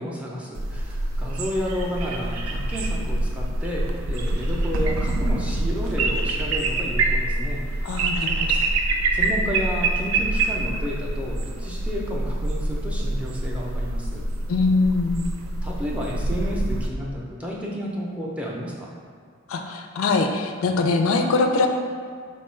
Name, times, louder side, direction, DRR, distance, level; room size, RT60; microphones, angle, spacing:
voice 1, 0.0-8.0 8.5-8.7 9.1-14.3 15.6-18.9, equal, 5° right, -4 dB, 0.5 m, -31 dB
sound 1, 0.6-16.9, right 2 dB, 80° right, 0.4 m, -26 dB
voice 2, 7.8-8.7 14.5-15.2 19.5-21.7, left 3 dB, 75° left, 5 dB, 0.4 m, -22 dB
4.3 x 2.3 x 4.2 m, 2.1 s
head